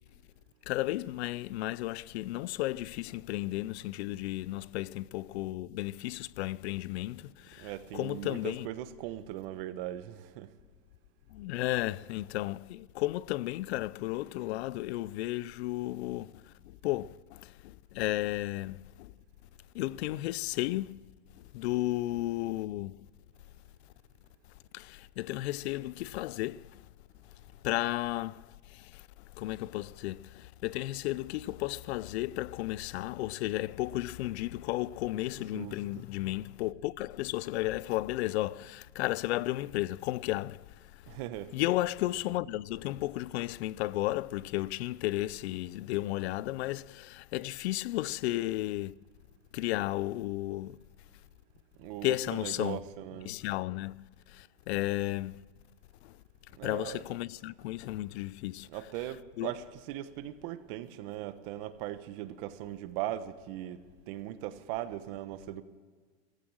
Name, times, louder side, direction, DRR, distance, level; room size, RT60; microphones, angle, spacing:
voice 1, 0.7-8.7 11.3-16.3 16.6-19.1 19.7-21.0 21.5-23.0 24.7-26.8 27.6-28.4 28.7-29.1 29.4-40.6 41.1-41.2 41.5-48.9 49.5-50.8 52.0-52.8 53.3-55.4 56.0-56.1 56.6-58.7 59.4-59.5, left 17 dB, 85° left, 0.5 m, -33 dB
voice 2, 7.6-10.5 35.5-35.8 41.1-41.5 51.8-53.3 56.6-57.0 58.7-65.6, right 13 dB, 60° right, 1.2 m, -39 dB
15.5 x 15.0 x 6.3 m
supercardioid pair, 145°, 32 cm